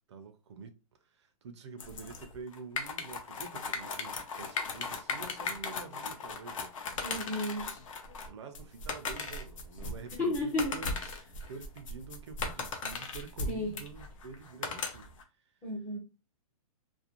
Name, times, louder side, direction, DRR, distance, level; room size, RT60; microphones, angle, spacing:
voice 1, 0.0-6.7 8.3-10.9 11.5-15.1, right 5 dB, 50° right, 0.4 m, -47 dB
sound 1, 1.8-15.2, left 4 dB, 60° left, 0.6 m, -38 dB
voice 2, 7.0-7.7 10.2-10.8 13.5-13.8 15.6-16.0, left 1 dB, 10° left, 0.4 m, -33 dB
2.5 x 2.0 x 2.8 m
hypercardioid pair, 170°, 19 cm